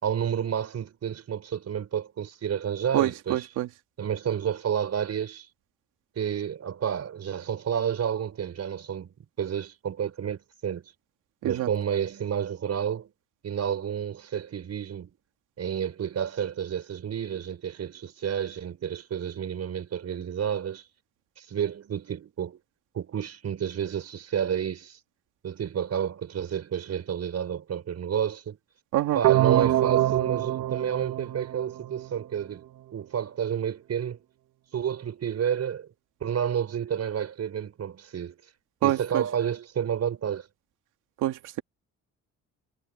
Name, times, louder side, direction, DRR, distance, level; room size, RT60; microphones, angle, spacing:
voice 1, 0.0-3.5 4.0-5.5 6.2-10.8 11.4-13.1 13.4-15.1 15.6-20.8 21.4-22.6 22.9-25.0 25.4-28.6 29.1-32.6 32.9-34.2 34.7-35.9 36.2-38.4 38.8-40.5, right 8 dB, 55° right, 5.5 m, -30 dB
voice 2, 2.9-3.7 11.4-11.7 28.9-29.2 29.6-29.7 38.8-39.2 41.2-41.6, right 14 dB, 90° right, 2.5 m, -26 dB
sound 1, 29.2-32.2, right 14 dB, 75° right, 1.6 m, -25 dB
cardioid pair, 90°, 30 cm